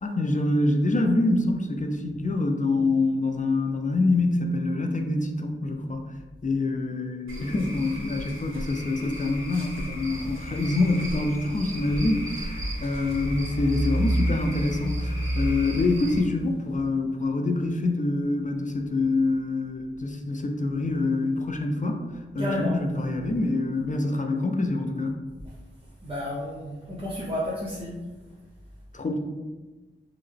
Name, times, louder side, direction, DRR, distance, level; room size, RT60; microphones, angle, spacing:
voice 1, 0.0-6.0 6.4-22.1 22.3-25.1 28.9-29.2, left 2 dB, 40° left, 3 dB, 0.4 m, -26 dB
Cricket / Frog, 7.3-16.2, equal, 85° right, 0.8 m, -37 dB
sound 1, 10.1-16.8, right 1 dB, 85° left, 1.0 m, -31 dB
voice 2, 22.4-22.8 25.5-25.6 26.0-28.0, left 1 dB, 25° right, -7 dB, 0.7 m, -31 dB
3.6 x 2.1 x 3.3 m, 1.2 s
wide cardioid pair, 50°, 20 cm